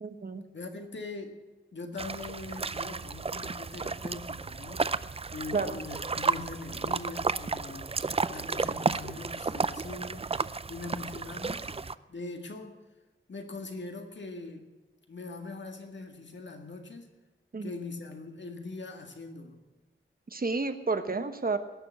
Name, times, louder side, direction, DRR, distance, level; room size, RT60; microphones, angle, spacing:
voice 1, 0.0-0.4 5.5-5.8 17.5-17.7 20.3-21.6, right 4 dB, 45° right, 9 dB, 1.1 m, -30 dB
voice 2, 0.5-1.4 1.7-4.9 5.3-10.3 10.7-12.8 13.3-14.7 15.1-17.1 17.6-19.6, left 3 dB, 65° left, 4 dB, 1.9 m, -42 dB
sound 1, 2.0-11.9, right 4 dB, 30° right, 0.4 m, -33 dB
18.0 x 7.0 x 8.7 m, 1.2 s
wide cardioid pair, 100°, 20 cm